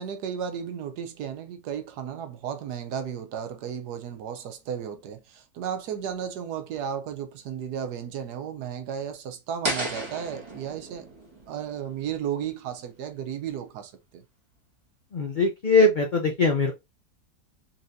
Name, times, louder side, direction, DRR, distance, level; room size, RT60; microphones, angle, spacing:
voice 1, 0.0-11.1 11.5-14.2, right 8 dB, 80° right, 1.3 m, -34 dB
sound 1, 9.6-12.7, right 1 dB, 20° right, 1.3 m, -34 dB
voice 2, 15.1-16.7, left 3 dB, 70° left, 0.4 m, -21 dB
4.2 x 3.1 x 2.7 m
omnidirectional pair, 1.7 m